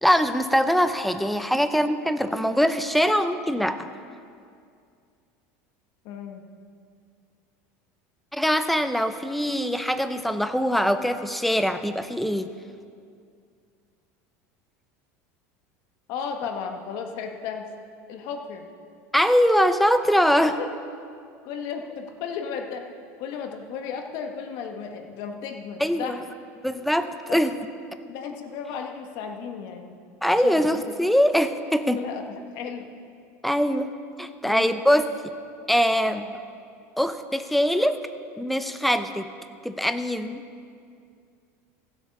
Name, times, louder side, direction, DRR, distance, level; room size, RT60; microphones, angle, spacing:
voice 1, 0.0-3.9 8.3-12.5 19.1-20.5 25.8-26.2 26.6-27.5 30.2-32.0 33.4-33.9 34.2-35.1 35.7-36.2 37.0-38.0 38.4-39.3 39.6-40.4, equal, ahead, 10 dB, 0.6 m, -22 dB
voice 2, 6.0-6.5 16.1-17.7 18.1-18.7 20.4-20.7 21.4-26.2 27.3-27.5 28.1-30.0 30.4-30.8 31.9-32.9 34.4-34.8 36.0-36.3, left 6 dB, 60° left, 5 dB, 1.4 m, -35 dB
15.0 x 8.1 x 6.1 m, 2.3 s
supercardioid pair, 120°, 8 cm